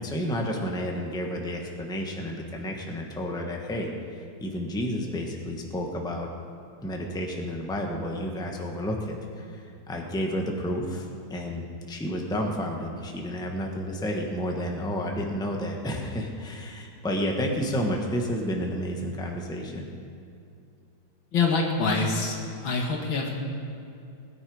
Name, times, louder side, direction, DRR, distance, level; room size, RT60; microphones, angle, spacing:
voice 1, 0.0-6.3 6.8-19.9, equal, 5° left, 1 dB, 1.1 m, -31 dB
voice 2, 21.3-23.3, left 4 dB, 90° left, 1 dB, 2.6 m, -25 dB
20.0 x 10.0 x 4.9 m, 2.6 s
omnidirectional pair, 2.1 m